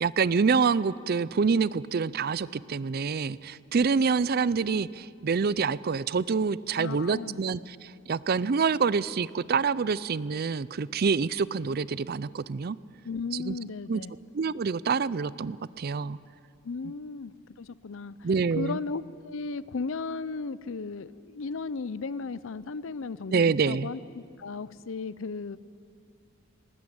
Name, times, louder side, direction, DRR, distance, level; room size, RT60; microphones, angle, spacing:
voice 1, 0.0-12.8 13.4-13.6 13.9-14.0 14.3-16.2 18.2-18.8 23.3-23.9, right 5 dB, 45° right, 19 dB, 0.4 m, -26 dB
voice 2, 6.8-7.4 13.0-14.1 16.6-18.3 18.6-25.6, left 4 dB, 65° left, 18 dB, 0.6 m, -35 dB
19.5 x 18.0 x 8.7 m, 2.3 s
head